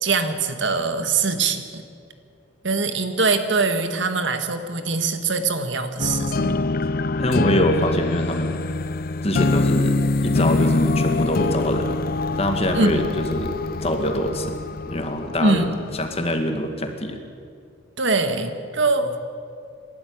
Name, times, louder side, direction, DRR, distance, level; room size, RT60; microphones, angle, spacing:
voice 1, 0.0-1.8 2.6-6.6 12.8-13.0 15.4-15.8 18.0-19.2, right 3 dB, 60° right, 8 dB, 1.7 m, -23 dB
sound 1, 6.0-16.2, left 3 dB, 45° left, 0.5 m, -24 dB
voice 2, 7.2-8.6 9.2-12.0 12.4-14.6 14.9-15.7 16.0-17.2, equal, 30° left, 6 dB, 1.8 m, -24 dB
27.5 x 13.0 x 8.6 m, 2.3 s
head